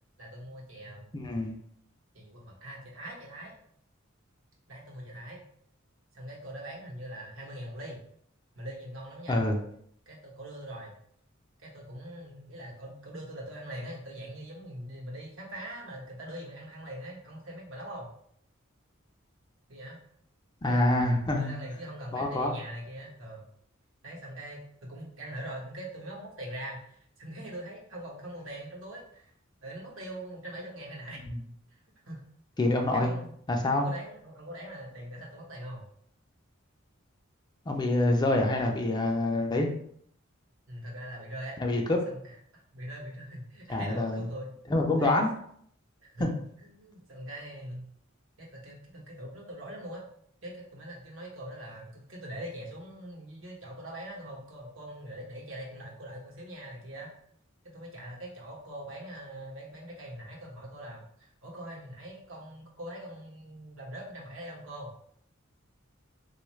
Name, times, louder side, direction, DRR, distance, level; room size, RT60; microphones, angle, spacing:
voice 1, 0.2-1.1 2.1-3.5 4.7-5.4 6.1-8.0 8.5-9.4 10.1-10.9 11.6-18.1 19.7-20.0 20.7-23.5 24.0-29.3 29.6-31.2 32.1-32.2 32.9-33.4 33.7-35.9 40.7-41.6 42.1-42.2 42.5-44.5 45.0-45.2 46.0-46.3 46.6-47.9 48.4-50.1 50.4-57.1 57.7-64.9, right 1 dB, 75° right, -1 dB, 1.0 m, -42 dB
voice 2, 1.1-1.5 9.3-9.6 20.6-21.6 22.1-22.5 31.3-31.4 32.6-33.1 33.5-33.9 37.7-39.7 41.6-42.0 43.7-44.3 44.7-45.3 46.2-46.3, left 1 dB, 20° left, 2 dB, 0.4 m, -26 dB
3.4 x 2.3 x 3.1 m, 0.65 s
head